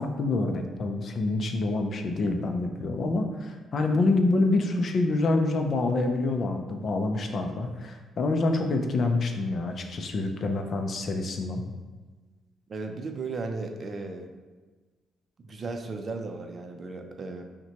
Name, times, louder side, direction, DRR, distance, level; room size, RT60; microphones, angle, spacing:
voice 1, 0.0-11.6, left 2 dB, 50° left, 5 dB, 0.5 m, -27 dB
voice 2, 12.7-14.3 15.4-17.4, right 3 dB, 45° right, 5 dB, 0.5 m, -35 dB
5.6 x 2.2 x 2.9 m, 1.3 s
cardioid pair, 90°, 0 cm